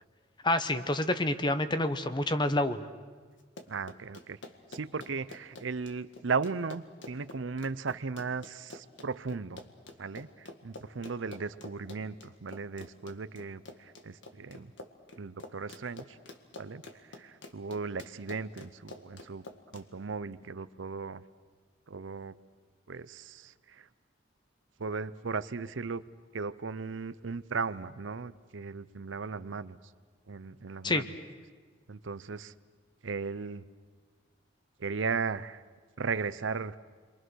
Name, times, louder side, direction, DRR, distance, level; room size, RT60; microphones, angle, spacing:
voice 1, 0.4-2.8 30.8-31.0, left 1 dB, 25° left, 11 dB, 1.0 m, -28 dB
Run, 3.4-19.8, left 2 dB, 75° left, 1.8 m, -48 dB
voice 2, 3.7-4.4 4.7-9.6 10.0-14.7 15.2-16.2 16.6-16.8 17.1-19.4 19.7-21.2 21.9-22.3 22.9-23.9 24.8-26.0 26.3-29.8 30.3-31.1 31.9-32.5 33.0-33.6 34.8-35.6 36.0-36.8, right 4 dB, 85° right, 15 dB, 0.7 m, -36 dB
30.0 x 23.5 x 6.4 m, 1.5 s
head